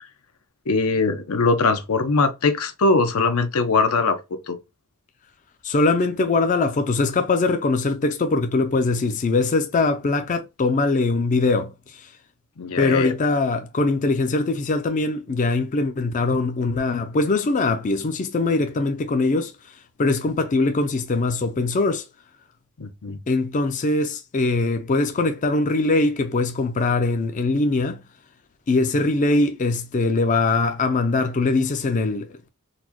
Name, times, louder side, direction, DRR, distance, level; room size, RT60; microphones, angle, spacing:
voice 1, 0.7-4.2 4.5-4.6 12.6-13.1 22.8-23.2, left 3 dB, 85° left, 0.6 m, -21 dB
voice 2, 5.6-11.7 12.8-19.5 20.0-22.0 23.3-28.0 28.7-32.5, left 3 dB, 35° left, 0.4 m, -22 dB
4.0 x 2.2 x 2.9 m
head